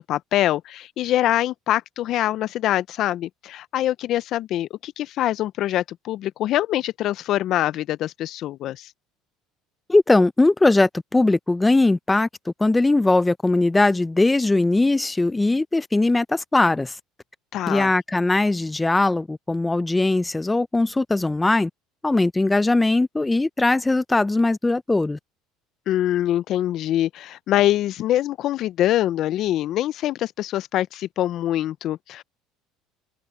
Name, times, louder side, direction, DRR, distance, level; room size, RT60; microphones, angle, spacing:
voice 1, 0.0-8.9 17.5-17.9 25.9-32.2, left 13 dB, 60° left, 0.7 m, -24 dB
voice 2, 9.9-16.9 17.7-21.7 22.0-25.2, left 2 dB, 15° left, 0.6 m, -20 dB
open air
supercardioid pair, 85°, 0 cm